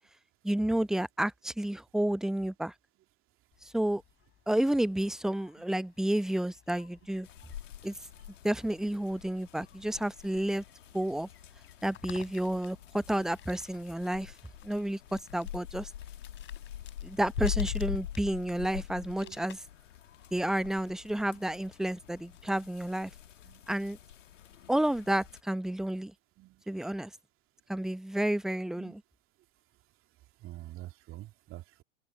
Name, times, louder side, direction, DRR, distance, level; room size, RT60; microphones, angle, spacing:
voice 1, 0.4-2.7 3.6-4.0 4.5-7.3 7.8-7.9 8.4-10.6 10.9-11.3 11.8-14.3 14.6-15.9 17.0-19.6 20.3-23.1 23.7-24.0 24.7-26.1 26.7-27.1 27.7-29.0, right 1 dB, ahead, 0.8 m, -30 dB
sound 1, 3.5-22.5, left 12 dB, 30° left, 5.2 m, -57 dB
sound 2, 7.2-25.4, left 11 dB, 65° left, 2.1 m, -43 dB
voice 2, 30.4-31.8, right 15 dB, 30° right, 2.7 m, -46 dB
open air
figure-of-eight pair, 95°, 41 cm